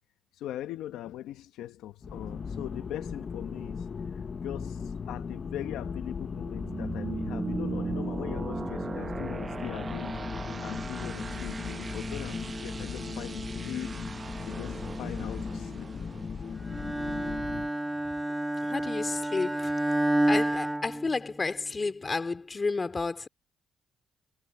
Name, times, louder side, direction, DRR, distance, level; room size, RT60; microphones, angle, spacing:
voice 1, 0.4-3.9 4.1-13.9 14.5-15.9, left 12 dB, 90° left, 1.0 m, -40 dB
sound 1, 2.0-17.7, left 6 dB, 45° left, 0.8 m, -37 dB
sound 2, 6.2-17.9, right 4 dB, 30° right, 0.8 m, -38 dB
Bowed string instrument, 16.7-21.7, right 1 dB, 10° right, 2.6 m, -29 dB
voice 2, 18.6-19.7 20.3-23.3, left 3 dB, 30° left, 2.9 m, -31 dB
cardioid pair, 90°, 0 cm